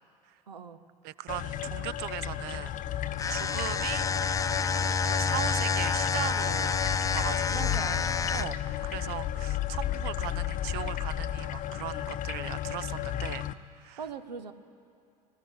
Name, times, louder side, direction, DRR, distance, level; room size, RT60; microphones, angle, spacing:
voice 1, 0.5-0.8 7.5-8.1 14.0-14.5, right 5 dB, 80° right, 12 dB, 0.9 m, -40 dB
voice 2, 1.0-2.8 3.3-4.1 4.8-6.8 7.1-7.9 8.3-8.6 8.9-13.5 13.8-14.0, right 16 dB, 50° right, 20 dB, 0.5 m, -38 dB
sound 1, 1.3-13.5, left 11 dB, 40° left, 0.8 m, -33 dB
sound 2, 3.1-8.7, left 5 dB, 15° left, 0.5 m, -29 dB
20.0 x 14.5 x 9.2 m, 2.5 s
figure-of-eight pair, 70°, 21 cm